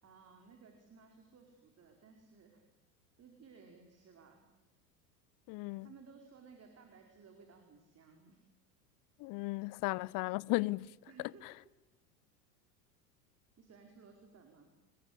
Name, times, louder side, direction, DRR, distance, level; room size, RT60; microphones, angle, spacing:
voice 1, 0.0-2.6 3.2-4.5 5.8-8.4 11.1-11.7 13.6-14.7, right 5 dB, 30° right, 4.9 m, -58 dB
voice 2, 5.5-5.9 9.2-10.9 11.4-11.5, left 23 dB, 45° left, 0.8 m, -35 dB
27.0 x 21.5 x 8.4 m
hypercardioid pair, 85°, 47 cm